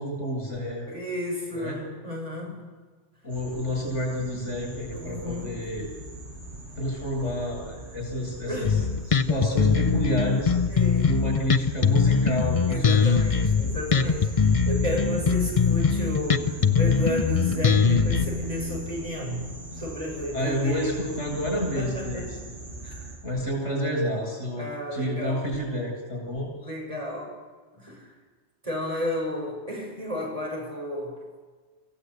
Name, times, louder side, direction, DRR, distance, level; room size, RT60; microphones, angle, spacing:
voice 1, 0.0-0.9 1.5-1.8 3.2-5.9 6.8-8.7 9.1-10.5 11.1-13.3 20.3-22.3 22.9-26.5, equal, 85° left, 1 dB, 8.5 m, -29 dB
voice 2, 0.8-2.6 4.9-5.8 8.4-8.8 9.3-9.8 10.7-11.1 12.7-21.0 21.5-22.5 24.6-25.5 26.6-27.4 27.8-28.1 28.6-31.1, left 1 dB, 30° right, -1 dB, 6.9 m, -33 dB
sound 1, 3.3-23.2, right 1 dB, 50° right, 6.7 m, -38 dB
Bass guitar, 8.6-18.2, left 6 dB, 35° left, 0.7 m, -22 dB
26.0 x 16.0 x 8.3 m, 1.4 s
omnidirectional pair, 1.2 m